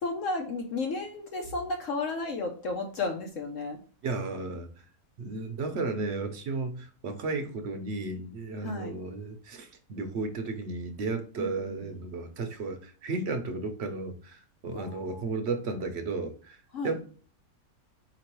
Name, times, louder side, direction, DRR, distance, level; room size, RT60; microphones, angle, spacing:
voice 1, 0.0-3.8 8.6-9.0 11.4-11.8 14.7-15.2 16.7-16.9, left 3 dB, 65° left, 1.0 m, -33 dB
voice 2, 4.0-4.7 5.2-17.0, right 3 dB, 55° right, 0.8 m, -34 dB
4.4 x 3.0 x 3.0 m
omnidirectional pair, 1.5 m